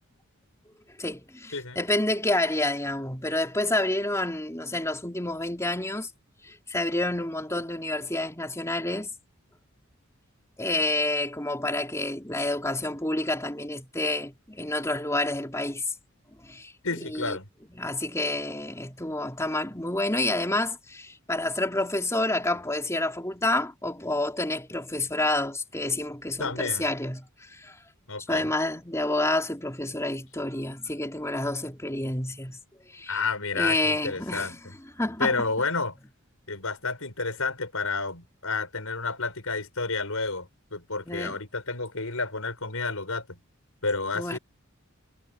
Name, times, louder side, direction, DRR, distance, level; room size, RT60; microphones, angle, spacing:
voice 1, 1.0-6.1 6.4-9.1 10.6-15.8 16.4-16.7 17.1-17.4 17.8-27.7 28.3-32.6 32.9-33.2 33.5-34.6 35.0-35.4 41.1-41.4 44.1-44.4, left 2 dB, 15° left, 3.9 m, -29 dB
voice 2, 16.8-17.4 26.4-26.9 28.1-28.5 33.1-34.6 35.2-36.0 36.5-43.4 43.8-44.4, left 4 dB, 75° left, 5.5 m, -30 dB
head